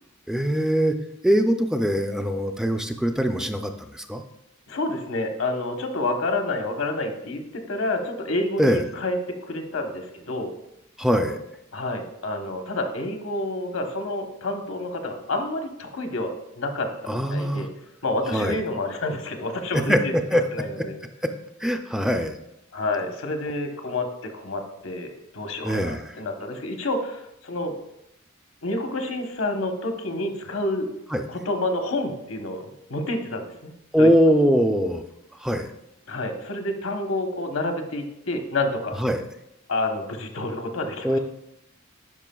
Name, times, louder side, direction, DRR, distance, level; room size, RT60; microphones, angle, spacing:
voice 1, 0.3-1.0 1.2-4.2 8.6-8.9 11.0-11.4 17.1-17.7 18.3-18.6 19.7-20.4 20.7-20.9 21.2-21.3 21.6-22.4 25.6-26.2 31.1-31.2 33.9-35.0 35.4-35.7 39.0-39.2 41.0-41.2, equal, 5° right, 6 dB, 0.3 m, -22 dB
voice 2, 4.7-10.5 11.7-17.7 18.0-20.1 20.5-20.9 22.7-27.7 28.6-30.9 31.3-33.7 34.0-34.1 36.1-39.0 39.7-41.2, left 2 dB, 85° left, 4 dB, 1.0 m, -29 dB
10.5 x 5.4 x 2.3 m, 0.83 s
head